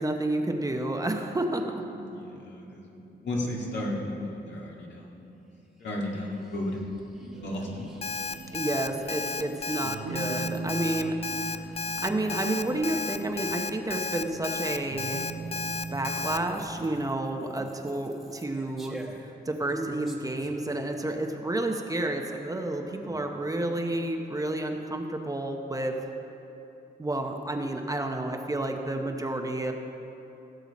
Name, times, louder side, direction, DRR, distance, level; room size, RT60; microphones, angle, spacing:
voice 1, 0.0-1.6 8.5-11.6 12.0-15.2 15.9-19.0 19.5-25.9 27.0-29.7, right 1 dB, 20° right, 3 dB, 0.8 m, -30 dB
voice 2, 1.6-5.3 5.8-6.8 7.1-7.9 17.4-17.6 22.9-23.2, left 1 dB, 75° left, -3 dB, 2.0 m, -35 dB
sound 1, 5.6-21.0, right 1 dB, ahead, 1.4 m, -49 dB
sound 2, 7.3-17.2, right 4 dB, 80° right, 0.9 m, -40 dB
Alarm, 8.0-16.4, left 4 dB, 35° left, 0.4 m, -33 dB
17.0 x 6.8 x 4.2 m, 2.9 s
cardioid pair, 90°, 18 cm